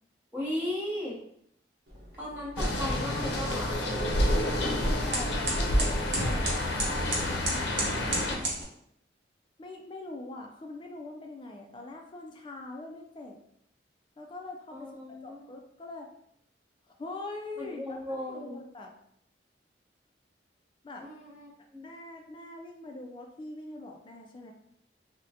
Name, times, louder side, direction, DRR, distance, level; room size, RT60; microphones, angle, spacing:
voice 1, 0.3-1.2 2.2-3.8 14.7-15.5 17.6-18.6 21.0-21.9, left 1 dB, 10° right, -6 dB, 0.9 m, -36 dB
sound 1, 1.9-8.6, right 2 dB, 65° right, 0.8 m, -36 dB
sound 2, 2.6-8.4, left 1 dB, 80° left, 0.6 m, -28 dB
voice 2, 4.6-8.5 9.6-13.4 14.2-15.0 15.2-16.1 16.9-18.9 20.8-21.1 21.8-24.5, left 2 dB, 30° left, 2 dB, 0.4 m, -43 dB
3.5 x 2.1 x 2.8 m, 0.72 s
head